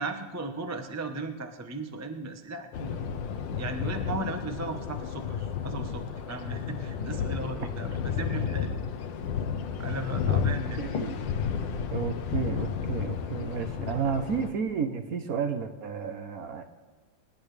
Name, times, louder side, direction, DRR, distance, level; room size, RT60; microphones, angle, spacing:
voice 1, 0.0-3.0 3.6-8.8 9.8-10.8, right 2 dB, 15° right, 5 dB, 0.5 m, -36 dB
sound 1, 2.7-14.5, left 7 dB, 80° left, 1.6 m, -32 dB
voice 2, 10.8-11.3 11.9-16.7, right 6 dB, 55° right, 7 dB, 1.2 m, -32 dB
25.5 x 11.0 x 3.3 m, 1.5 s
omnidirectional pair, 2.0 m